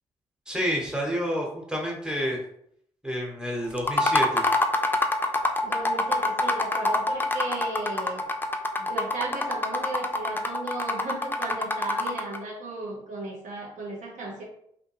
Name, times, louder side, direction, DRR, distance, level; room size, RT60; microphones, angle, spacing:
voice 1, 0.5-2.4 3.0-4.4, equal, 5° right, -2 dB, 1.0 m, -29 dB
sound 1, 3.8-12.4, left 2 dB, 15° left, 0.4 m, -25 dB
voice 2, 5.6-8.2 8.8-14.4, right 2 dB, 70° right, -2 dB, 0.8 m, -35 dB
2.6 x 2.1 x 3.0 m, 0.70 s
supercardioid pair, 50°, 13 cm